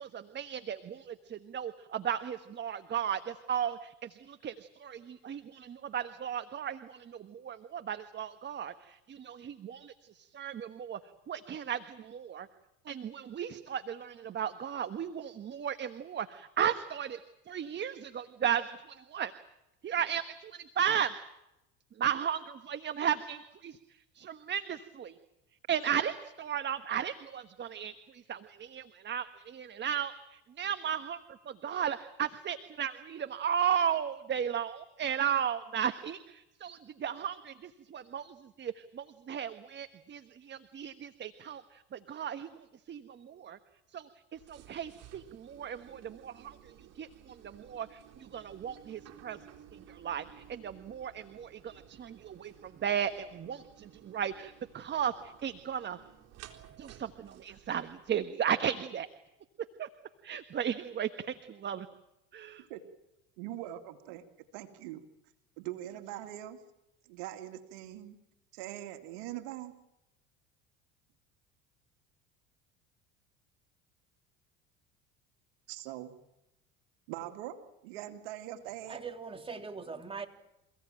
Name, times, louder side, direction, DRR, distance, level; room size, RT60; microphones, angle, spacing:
voice 1, 0.0-11.0 11.3-12.5 12.8-17.2 17.5-19.3 19.8-21.1 22.0-23.8 24.1-25.2 25.7-31.2 31.4-43.6 43.9-49.4 49.7-56.0 56.8-59.1 59.8-59.9 60.2-61.9 62.3-62.7, right 8 dB, 35° right, 1.4 m, -35 dB
sound 1, 44.3-58.2, right 10 dB, 55° right, 3.8 m, -56 dB
voice 2, 63.4-64.2 64.5-65.0 65.6-66.6 67.1-68.2 68.5-69.7 75.7-76.1 77.1-77.6 77.8-79.0, right 13 dB, 75° right, 2.4 m, -42 dB
voice 3, 78.9-80.3, right 5 dB, 20° right, 3.4 m, -41 dB
28.5 x 16.5 x 9.1 m
hypercardioid pair, 80°, 30 cm